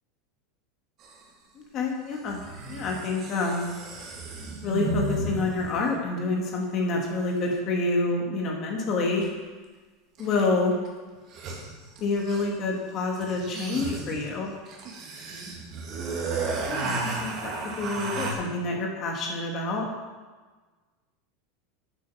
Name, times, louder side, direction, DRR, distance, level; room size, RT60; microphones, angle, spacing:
sound 1, 1.0-1.1 2.3-5.8 9.2-9.3 10.2-10.6 10.9-11.0 11.2-12.6 13.2-18.3, right 3 dB, 40° right, 2.3 m, -33 dB
voice 1, 1.7-2.4 2.7-3.7 4.6-9.2 10.2-10.8 12.0-14.5 16.7-19.9, left 3 dB, 35° left, 0 dB, 2.4 m, -28 dB
9.8 x 8.7 x 5.9 m, 1.3 s
supercardioid pair, 150°, 0 cm